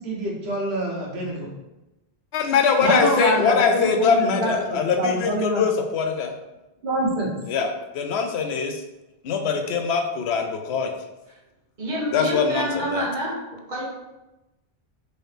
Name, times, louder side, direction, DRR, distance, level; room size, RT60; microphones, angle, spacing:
voice 1, 0.0-1.5 2.8-5.6 6.8-7.3, right 1 dB, 90° right, -2 dB, 1.2 m, -25 dB
voice 2, 2.3-6.3 7.5-8.8 9.2-10.9 12.1-13.1, left 6 dB, 90° left, 5 dB, 0.8 m, -22 dB
voice 3, 11.8-13.3 13.7-13.8, equal, 50° right, -6 dB, 1.3 m, -27 dB
4.2 x 2.7 x 3.3 m, 0.99 s
omnidirectional pair, 1.0 m